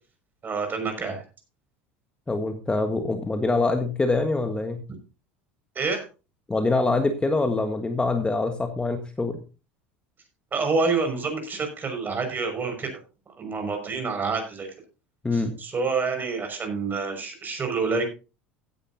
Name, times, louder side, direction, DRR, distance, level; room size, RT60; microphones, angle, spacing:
voice 1, 0.4-1.2 5.7-6.0 10.5-12.9 13.4-14.7 15.3-18.0, right 4 dB, 30° right, 6 dB, 5.8 m, -27 dB
voice 2, 2.3-4.8 6.5-9.4 15.2-15.6, left 3 dB, 15° left, 6 dB, 1.5 m, -24 dB
16.0 x 9.9 x 2.7 m, 0.32 s
hypercardioid pair, 85°, 6 cm